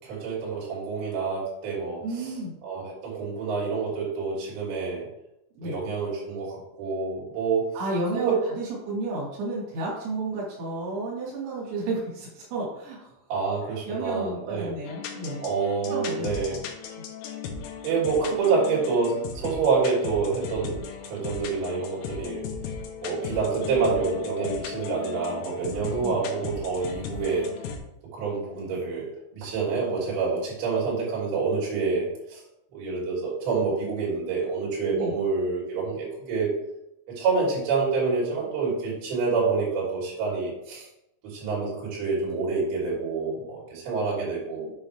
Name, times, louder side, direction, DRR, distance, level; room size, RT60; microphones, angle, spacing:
voice 1, 0.0-2.3 2.6-5.1 5.6-7.6 8.1-8.4 13.3-14.7 15.4-16.6 17.8-20.8 21.1-22.4 23.0-27.5 28.1-32.4 32.7-36.5 37.2-40.9 41.2-44.7, right 4 dB, 50° right, -6 dB, 5.0 m, -27 dB
voice 2, 2.0-2.5 5.6-5.7 7.7-13.2 13.9-15.4 15.9-16.6 17.0-17.1 26.0-26.1 34.9-35.1 44.6-44.7, right 2 dB, 80° right, -5 dB, 4.8 m, -32 dB
sound 1, 14.9-27.8, left 6 dB, 80° left, 3.4 m, -37 dB
8.9 x 6.9 x 3.4 m, 0.83 s
omnidirectional pair, 6.0 m